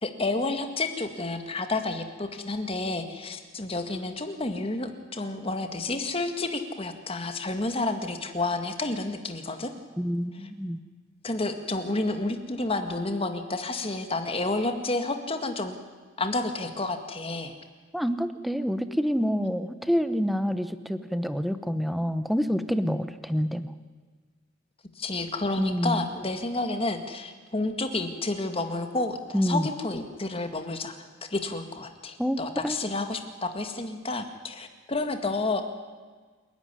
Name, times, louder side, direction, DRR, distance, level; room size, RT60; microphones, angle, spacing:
voice 1, 0.0-9.7 11.2-15.8 16.2-17.5 25.0-31.0 31.3-35.6, left 2 dB, 30° left, 7 dB, 1.9 m, -30 dB
voice 2, 10.0-10.8 17.9-23.7 25.6-26.0 29.3-29.7 32.2-32.8, equal, ahead, 11 dB, 0.9 m, -27 dB
28.0 x 11.5 x 9.9 m, 1.5 s
head